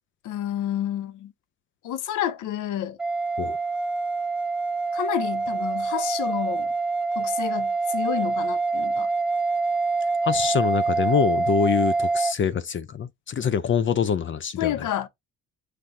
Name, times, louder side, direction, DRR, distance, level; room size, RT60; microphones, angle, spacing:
voice 1, 0.2-1.3 1.8-3.0 4.9-6.7 7.2-9.1 14.6-15.1, left 11 dB, 80° left, 0.8 m, -29 dB
sound 1, 3.0-12.3, right 3 dB, 5° right, 1.0 m, -25 dB
voice 2, 10.2-14.9, left 7 dB, 40° left, 0.5 m, -25 dB
5.8 x 3.2 x 2.6 m
cardioid pair, 90°, 30 cm